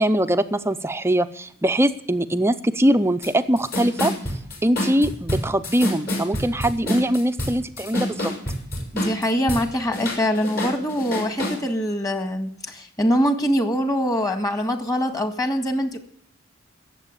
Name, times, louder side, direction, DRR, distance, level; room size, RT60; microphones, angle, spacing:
voice 1, 0.0-4.1 4.6-8.3, right 1 dB, 10° right, 10 dB, 0.5 m, -22 dB
sound 1, 3.2-3.3 3.6-9.6 9.9-11.6, left 1 dB, 50° left, 5.5 m, -27 dB
voice 2, 8.9-16.0, equal, 20° left, 6 dB, 1.7 m, -23 dB
18.0 x 7.6 x 8.8 m, 0.65 s
head